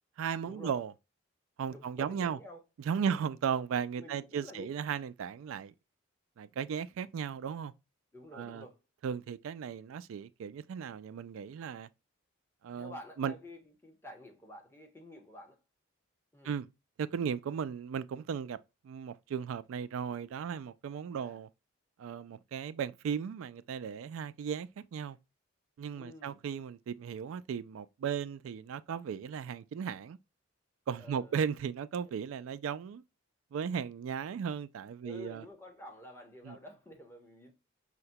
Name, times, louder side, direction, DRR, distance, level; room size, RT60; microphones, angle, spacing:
voice 1, 0.2-0.9 1.6-2.4 2.9-5.7 6.4-7.7 8.3-8.7 9.0-11.9 12.6-13.3 16.4-16.7 17.0-18.6 18.8-21.5 22.0-25.2 25.8-30.2 30.9-33.0 33.5-35.4 36.4-36.6, right 7 dB, 75° right, 0.3 m, -36 dB
voice 2, 1.7-2.6 3.0-3.2 4.0-4.7 8.1-8.8 12.7-15.6 16.3-16.5 21.2-21.4 25.9-26.4 31.0-31.5 32.0-32.1 35.0-37.5, left 1 dB, 10° left, 0.8 m, -50 dB
5.7 x 2.2 x 2.6 m
head